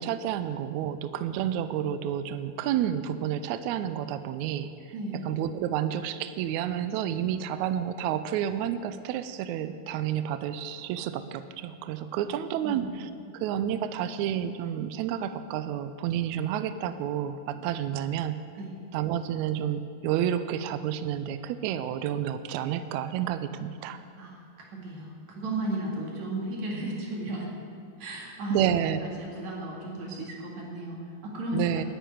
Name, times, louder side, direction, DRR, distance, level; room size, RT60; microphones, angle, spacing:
voice 1, 0.0-4.7 5.3-18.4 18.9-24.0 28.5-29.0 31.5-31.8, right 10 dB, 85° right, 12 dB, 1.6 m, -30 dB
voice 2, 4.9-5.3 12.1-12.3 12.6-12.9 18.6-18.7 24.2-27.5 28.0-31.8, right 1 dB, 60° right, -1 dB, 3.3 m, -35 dB
10.0 x 9.3 x 9.1 m, 2.3 s
omnidirectional pair, 3.8 m